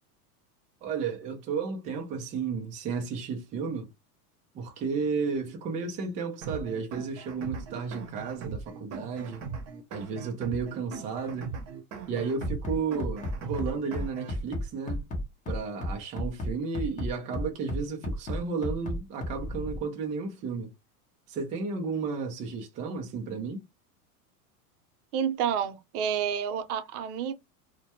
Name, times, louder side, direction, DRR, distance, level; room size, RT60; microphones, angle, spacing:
voice 1, 0.8-3.9 4.5-9.4 9.9-11.5 12.1-15.0 15.5-20.7 21.3-23.6, right 5 dB, 20° right, 0.3 m, -33 dB
sound 1, 6.4-14.4, right 5 dB, 35° right, 0.8 m, -40 dB
Bass drum, 12.4-19.8, left 1 dB, 20° left, 0.6 m, -32 dB
voice 2, 25.1-27.3, right 8 dB, 75° right, 0.7 m, -29 dB
2.2 x 2.1 x 2.8 m
supercardioid pair, 135°, 45 cm